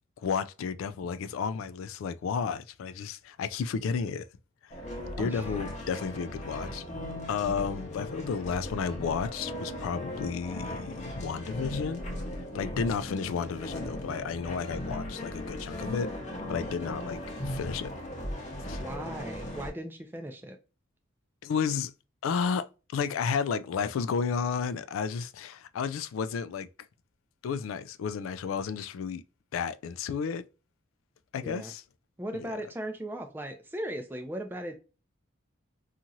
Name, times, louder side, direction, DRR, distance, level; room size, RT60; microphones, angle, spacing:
voice 1, 0.2-4.3 5.2-6.8 7.3-12.0 12.5-16.1 16.5-18.0 18.7-18.8 21.4-21.9 22.2-26.7 27.4-29.2 29.5-30.4 31.3-31.8 32.3-32.6, left 6 dB, 85° left, 0.3 m, -32 dB
sound 1, 4.7-19.7, left 1 dB, 35° left, 0.7 m, -38 dB
voice 2, 18.8-20.6 31.4-31.7 32.2-34.8, right 1 dB, 10° right, 0.4 m, -37 dB
2.9 x 2.4 x 2.6 m
head